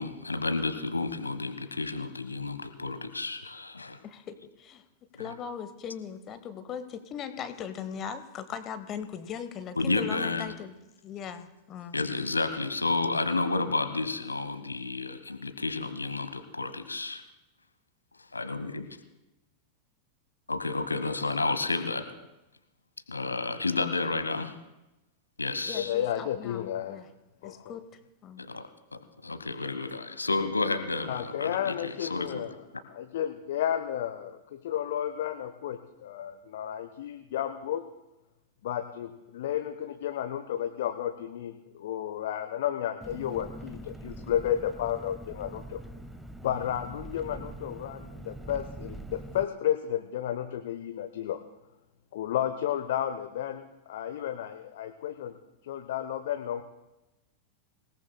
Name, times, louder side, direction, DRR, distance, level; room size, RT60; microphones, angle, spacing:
voice 1, 0.0-4.0 5.2-5.3 9.8-10.5 11.9-17.2 18.3-18.9 20.5-22.0 23.1-24.5 25.4-25.9 28.4-32.5, left 3 dB, 80° left, 10 dB, 1.0 m, -31 dB
voice 2, 4.0-4.8 5.2-10.7 11.0-12.0 25.7-27.1 27.4-27.9 28.2-28.4, left 8 dB, 30° left, 10 dB, 1.0 m, -39 dB
voice 3, 25.7-27.0 27.4-27.7 31.1-32.5 32.9-37.8 38.6-45.8 46.4-51.4 52.1-55.4 55.6-56.6, left 10 dB, 55° left, 8 dB, 0.7 m, -32 dB
Engine, 43.0-49.4, right 1 dB, 5° right, 0.8 m, -43 dB
26.0 x 17.5 x 2.2 m, 0.98 s
figure-of-eight pair, 90°, 0 cm